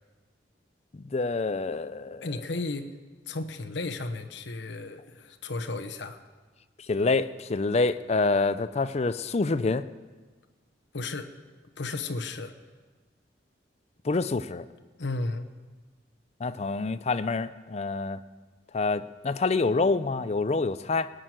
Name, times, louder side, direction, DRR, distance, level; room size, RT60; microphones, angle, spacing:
voice 1, 0.9-2.3 6.9-9.8 14.0-14.7 16.4-18.2 18.7-21.1, left 3 dB, 35° left, 14 dB, 0.5 m, -27 dB
voice 2, 2.2-2.9 3.3-6.2 10.9-11.3 11.8-12.5 15.0-15.4, left 3 dB, 80° left, 6 dB, 1.0 m, -34 dB
18.5 x 6.5 x 9.1 m, 1.4 s
head